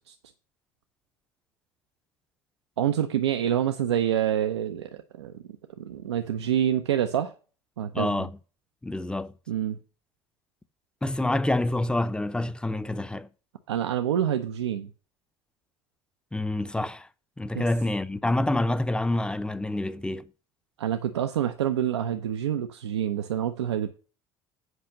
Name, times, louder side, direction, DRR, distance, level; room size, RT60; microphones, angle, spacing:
voice 1, 2.8-5.4 5.8-7.3 7.8-8.3 9.5-9.8 13.7-14.9 17.5-17.6 20.8-23.9, right 10 dB, 85° right, 0.5 m, -27 dB
voice 2, 7.9-8.3 8.8-9.3 11.0-13.3 16.3-17.1 17.4-20.3, left 1 dB, 5° left, 0.6 m, -27 dB
8.1 x 5.1 x 6.6 m
hypercardioid pair, 60°, 14 cm